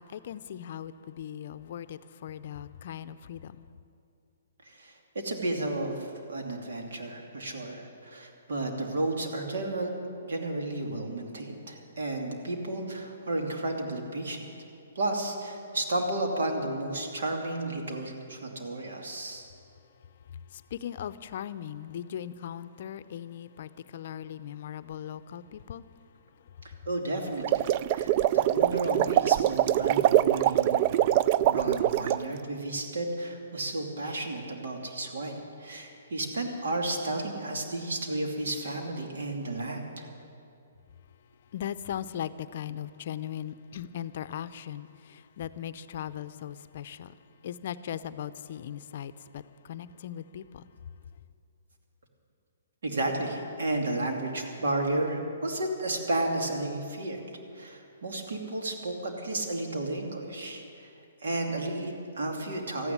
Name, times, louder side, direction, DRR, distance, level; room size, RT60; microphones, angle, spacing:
voice 1, 0.0-3.6 20.3-25.9 26.3-26.7 41.5-50.7, left 10 dB, 55° left, 0.5 m, -39 dB
voice 2, 4.6-9.9 10.2-14.5 14.9-19.5 26.6-30.8 31.4-40.1 52.8-57.2 57.5-60.9 61.2-62.9, right 2 dB, 75° right, 2.6 m, -32 dB
sound 1, 27.3-32.2, right 12 dB, 40° right, 0.3 m, -24 dB
14.0 x 9.9 x 9.6 m
hypercardioid pair, 145°, 0 cm